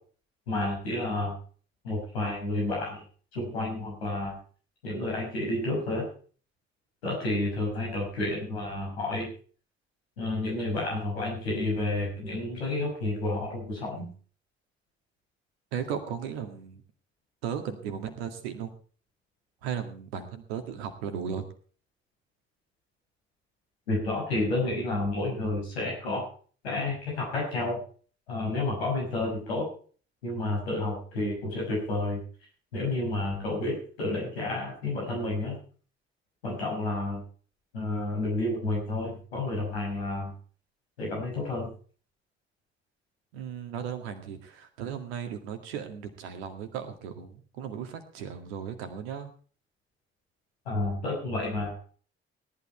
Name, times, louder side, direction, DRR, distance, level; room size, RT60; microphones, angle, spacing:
voice 1, 0.5-1.4 1.8-3.0 3.3-4.4 4.8-6.1 7.0-9.3 10.2-14.1 23.9-26.3 26.6-27.8 28.3-29.7 30.2-32.2 32.7-35.6 36.4-37.2 37.7-40.3 41.0-41.7 50.7-51.8, left 2 dB, 80° left, -2 dB, 6.1 m, -30 dB
voice 2, 15.7-16.8 17.4-18.7 19.6-21.5 43.3-49.3, right 8 dB, 75° right, 7 dB, 2.0 m, -36 dB
18.0 x 11.5 x 4.4 m, 0.42 s
figure-of-eight pair, 45°, 31 cm